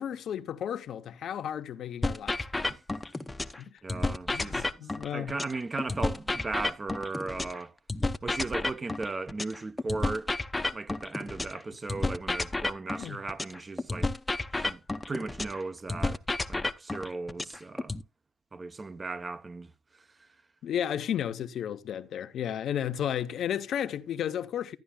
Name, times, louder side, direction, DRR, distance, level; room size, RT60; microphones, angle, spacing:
voice 1, 0.0-2.4 3.6-3.8 4.3-5.3 13.0-13.2 20.6-24.8, left 9 dB, 70° left, 0.7 m, -33 dB
sound 1, 2.0-3.6 3.9-7.6 7.9-11.6 11.9-15.6 15.9-18.0, left 2 dB, 15° left, 0.7 m, -31 dB
voice 2, 3.8-7.7 8.2-10.3 10.7-14.1 14.5-14.8 15.1-16.2 16.5-17.9 18.5-19.7, right 3 dB, 25° right, 0.8 m, -36 dB
13.0 x 10.0 x 2.3 m
cardioid pair, 90°, 0 cm